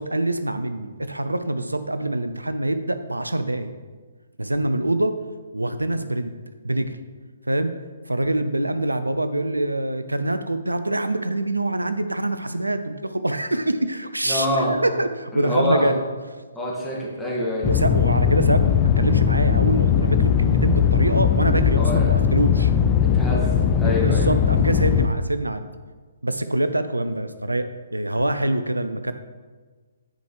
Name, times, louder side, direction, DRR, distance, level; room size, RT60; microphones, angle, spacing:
voice 1, 0.0-3.7 4.4-5.2 5.5-6.3 6.6-7.0 7.5-7.7 8.1-16.0 17.6-22.7 23.8-25.7 26.2-29.1, right 1 dB, 80° right, 10 dB, 0.4 m, -25 dB
voice 2, 14.2-14.7 15.3-15.9 16.5-17.7 21.8-22.1 23.0-24.3, left 1 dB, 5° left, -7 dB, 1.7 m, -26 dB
sound 1, 17.6-25.1, left 8 dB, 25° left, 0.3 m, -19 dB
10.0 x 4.7 x 3.2 m, 1.4 s
figure-of-eight pair, 130°, 0 cm